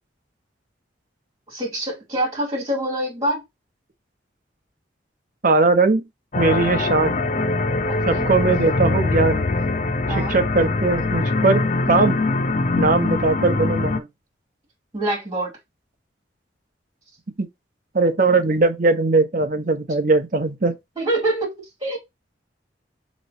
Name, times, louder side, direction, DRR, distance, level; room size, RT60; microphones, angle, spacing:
voice 1, 1.5-3.4 7.8-8.3 10.1-10.4 14.9-15.5 21.0-22.0, right 1 dB, 20° right, 2.8 m, -25 dB
voice 2, 5.4-6.0 6.4-7.2 8.0-9.5 10.1-12.2 12.8-14.1 17.4-17.5 17.9-20.7, right 3 dB, 45° right, 0.8 m, -20 dB
sound 1, 6.3-14.0, left 3 dB, 40° left, 0.5 m, -22 dB
6.5 x 3.1 x 2.6 m
head